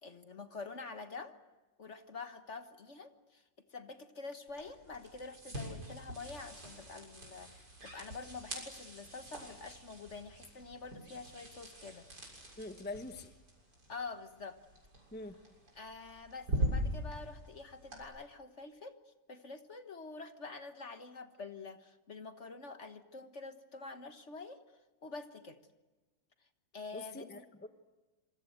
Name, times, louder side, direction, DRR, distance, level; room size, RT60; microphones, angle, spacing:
voice 1, 0.0-1.4 1.8-3.4 3.7-12.0 13.9-14.6 15.8-19.0 19.3-24.6 25.0-25.6 26.7-27.4, left 4 dB, 45° left, 9 dB, 1.6 m, -47 dB
sound 1, 4.5-18.0, equal, 65° right, 7.6 m, -42 dB
voice 2, 12.6-13.3 15.1-15.4 26.9-27.7, left 2 dB, 5° left, 9 dB, 1.1 m, -44 dB
26.5 x 25.0 x 8.0 m, 1.2 s
omnidirectional pair, 1.9 m